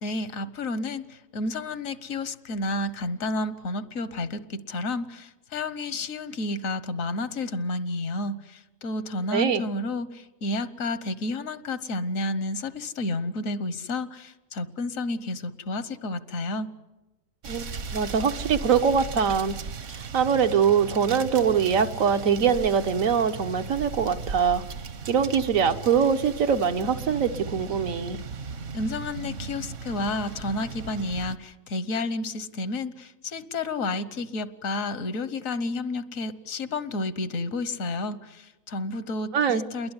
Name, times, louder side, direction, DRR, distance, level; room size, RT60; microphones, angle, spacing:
voice 1, 0.0-16.7 28.7-39.9, left 2 dB, 85° left, 14 dB, 1.5 m, -31 dB
voice 2, 9.3-9.6 17.5-17.6 17.9-19.6 19.9-24.6 25.1-28.2 39.3-39.6, right 7 dB, 85° right, 8 dB, 1.5 m, -23 dB
sound 1, 17.4-31.4, right 5 dB, 65° right, 1.4 m, -37 dB
28.5 x 21.5 x 9.7 m, 1.1 s
omnidirectional pair, 1.4 m